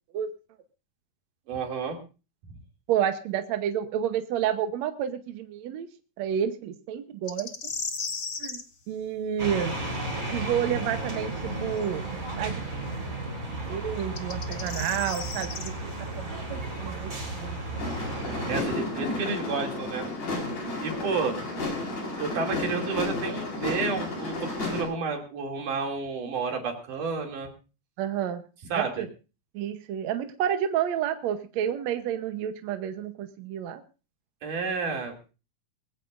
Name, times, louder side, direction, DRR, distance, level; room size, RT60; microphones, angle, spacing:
voice 1, 1.5-2.0 18.5-20.1 20.8-21.4 22.1-27.5 28.7-29.0 34.4-35.3, right 4 dB, 90° right, 3 dB, 4.3 m, -31 dB
voice 2, 2.9-5.9 6.2-7.5 8.4-9.8 10.3-12.6 13.7-15.7 16.2-17.6 28.0-28.4 28.7-29.1 29.5-33.8, right 9 dB, 70° right, 8 dB, 2.1 m, -30 dB
sound 1, 7.3-8.6 11.8-11.9 14.0-15.7, left 5 dB, 55° left, 0.9 m, -35 dB
sound 2, 9.4-18.6, right 2 dB, 25° right, 4.5 m, -34 dB
sound 3, 17.8-24.8, left 2 dB, 90° left, 6.5 m, -32 dB
21.5 x 16.0 x 2.6 m, 0.33 s
omnidirectional pair, 3.5 m